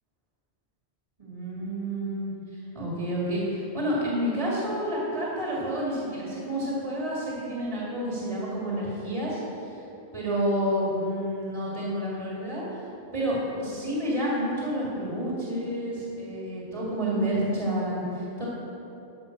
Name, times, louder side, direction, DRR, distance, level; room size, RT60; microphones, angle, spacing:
voice 1, 1.2-2.3 2.7-9.7 10.1-12.9 13.1-18.5, equal, 30° right, -6 dB, 2.1 m, -29 dB
12.5 x 5.5 x 6.6 m, 3.0 s
omnidirectional pair, 1.1 m